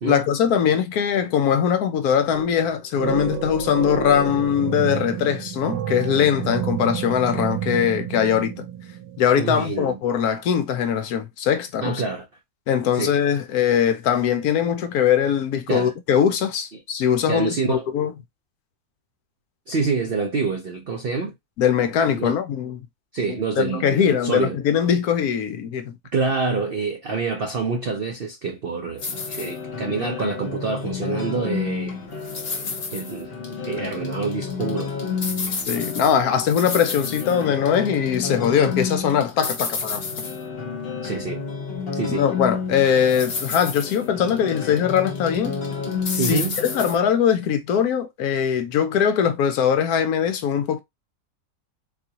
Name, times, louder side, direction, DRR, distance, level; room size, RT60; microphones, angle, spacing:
voice 1, 0.0-8.6 9.2-12.0 12.7-18.1 21.6-22.8 23.6-26.0 35.7-40.0 42.1-45.5 46.1-50.8, left 8 dB, 70° left, 1.0 m, -21 dB
sound 1, 2.3-2.7 3.0-9.7, right 10 dB, 85° right, 1.2 m, -30 dB
voice 2, 9.4-10.0 11.8-12.3 12.9-13.1 15.7-15.9 17.3-17.9 19.7-21.3 22.1-22.3 23.1-24.6 26.1-32.0 32.9-33.3 33.6-34.9 41.0-41.4 41.9-42.3 46.2-46.6, right 4 dB, 65° right, 0.5 m, -26 dB
sound 2, 29.0-47.0, left 5 dB, 45° left, 1.0 m, -30 dB
4.1 x 2.4 x 2.8 m
omnidirectional pair, 1.8 m